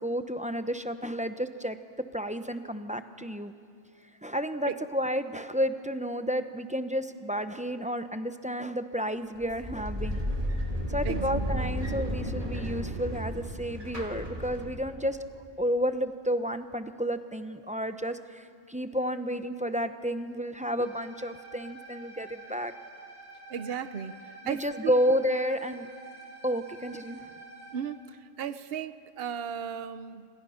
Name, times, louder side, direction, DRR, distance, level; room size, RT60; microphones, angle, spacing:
voice 1, 0.0-1.8 2.1-3.5 4.2-10.2 10.9-15.2 15.6-22.7 24.4-25.9 26.4-27.3, equal, 10° right, 9 dB, 0.7 m, -31 dB
sound 1, 9.4-15.0, equal, 35° right, 3.1 m, -33 dB
voice 2, 11.0-11.9 23.5-25.0 27.7-30.3, right 7 dB, 65° right, 12 dB, 1.0 m, -36 dB
sound 2, 20.8-27.7, right 3 dB, 90° right, 6.1 m, -48 dB
27.0 x 26.5 x 5.8 m, 2.2 s
omnidirectional pair, 1.1 m